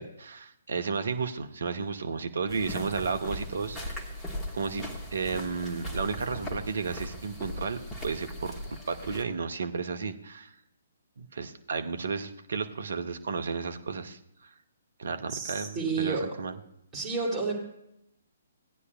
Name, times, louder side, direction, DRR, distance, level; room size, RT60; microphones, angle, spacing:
voice 1, 0.0-4.0 4.5-8.6 8.9-10.5 11.2-14.5 15.0-16.6, right 5 dB, 60° right, 8 dB, 0.8 m, -33 dB
sound 1, 2.5-9.2, left 1 dB, 10° left, 1.4 m, -39 dB
voice 2, 15.3-16.4 16.9-17.5, right 4 dB, 20° right, -4 dB, 3.1 m, -30 dB
17.0 x 9.6 x 2.4 m, 0.80 s
figure-of-eight pair, 130°, 0 cm